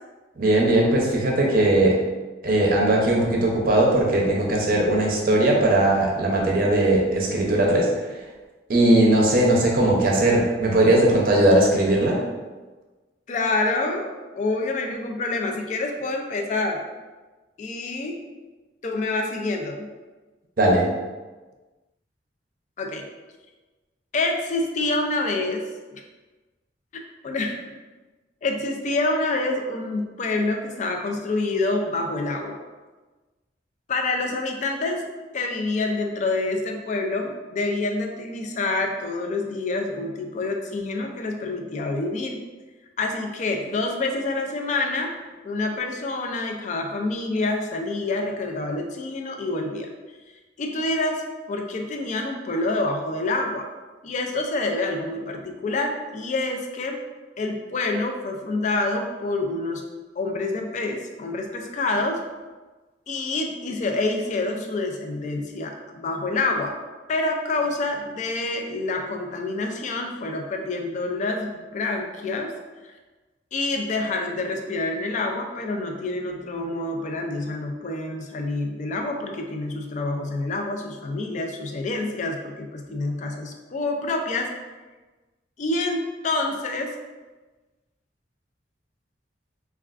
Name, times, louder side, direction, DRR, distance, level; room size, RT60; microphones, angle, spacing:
voice 1, 0.4-2.0 2.4-7.9 8.7-12.2 20.6-20.9, right 1 dB, 55° right, -1 dB, 0.6 m, -19 dB
voice 2, 13.3-16.9 17.6-18.2 18.8-19.9 22.8-23.1 24.1-25.7 25.9-26.0 26.9-27.6 28.4-32.6 33.9-35.1 35.3-42.4 43.0-45.1 45.4-50.2 50.6-53.7 54.0-57.0 57.4-59.8 60.2-62.2 63.1-66.7 67.1-72.5 73.5-84.5 85.6-86.9, left 2 dB, 40° left, 3 dB, 0.3 m, -27 dB
3.3 x 2.3 x 2.4 m, 1.2 s
head